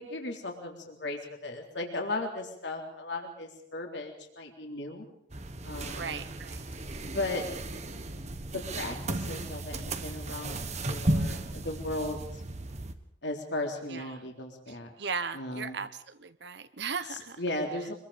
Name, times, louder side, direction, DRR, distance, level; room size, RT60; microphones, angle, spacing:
voice 1, 0.0-5.1 5.6-6.3 7.0-7.5 8.5-12.2 13.2-14.9 15.3-15.8 17.1-17.9, left 2 dB, 60° left, 2 dB, 3.7 m, -36 dB
sound 1, 5.3-12.9, right 2 dB, 35° right, 1.4 m, -35 dB
voice 2, 5.9-6.6 13.9-14.2 14.7-17.4, right 5 dB, 60° right, 12 dB, 0.9 m, -37 dB
25.5 x 22.5 x 5.1 m, 0.75 s
head